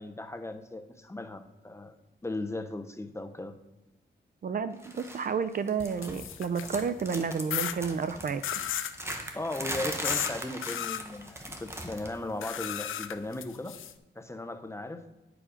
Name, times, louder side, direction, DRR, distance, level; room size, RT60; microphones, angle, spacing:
voice 1, 0.0-1.9 2.2-3.5 9.0-13.8 14.2-15.0, left 2 dB, 15° left, 8 dB, 0.7 m, -37 dB
voice 2, 4.4-8.6, right 6 dB, 45° right, 12 dB, 0.5 m, -31 dB
sound 1, 4.8-5.3 5.5-6.3 6.6-12.2 12.4-12.7 13.8-13.9, right 1 dB, 15° right, 1.2 m, -39 dB
sound 2, 5.8-6.9 7.5-7.8 8.4-9.0 10.0-10.3 10.6-11.0 12.4-13.9, left 10 dB, 90° left, 0.5 m, -34 dB
9.9 x 4.9 x 5.0 m, 1.1 s
cardioid pair, 95°, 20 cm